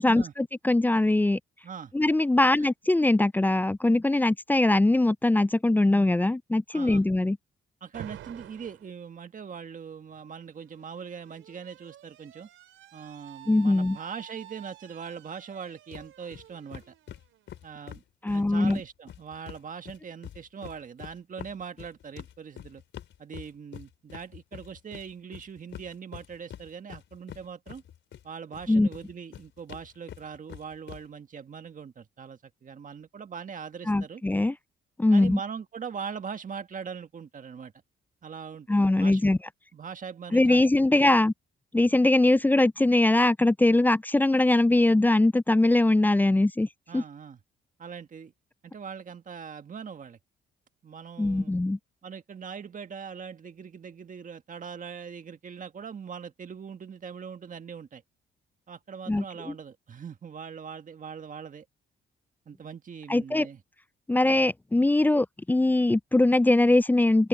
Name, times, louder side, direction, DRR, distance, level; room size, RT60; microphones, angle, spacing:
voice 1, 0.0-1.4 1.9-7.4 13.5-14.0 18.2-18.8 28.7-28.9 33.9-34.5 35.0-35.4 38.7-39.4 40.3-41.3 41.7-46.7 46.9-47.0 51.2-51.8 59.1-59.5 63.1-63.5 64.1-67.3, left 2 dB, 10° left, 0.3 m, -22 dB
voice 2, 6.7-7.0 7.8-12.5 12.9-16.9 17.6-18.0 18.3-22.8 23.2-27.8 28.2-34.2 35.1-37.7 38.2-39.4 39.7-40.7 46.9-47.4 47.8-48.3 48.6-50.2 50.8-51.5 52.0-58.0 58.7-61.6 62.4-63.6, right 6 dB, 40° right, 1.7 m, -41 dB
Alarm, 7.9-8.9 10.1-17.8, right 13 dB, 80° right, 5.0 m, -50 dB
sound 1, 15.9-16.1 16.3-16.4 16.7-19.6 19.9-28.2 28.5-31.0, left 10 dB, 70° left, 4.2 m, -45 dB
open air
cardioid pair, 90°, 20 cm